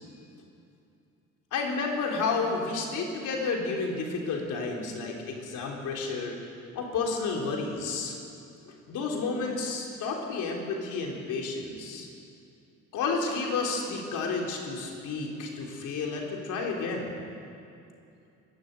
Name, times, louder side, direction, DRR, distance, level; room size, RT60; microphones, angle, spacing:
voice 1, 1.5-6.4 6.7-8.2 8.7-12.1 12.9-17.1, left 4 dB, 85° left, 0 dB, 3.8 m, -31 dB
23.5 x 12.0 x 9.3 m, 2.6 s
cardioid pair, 90°, 30 cm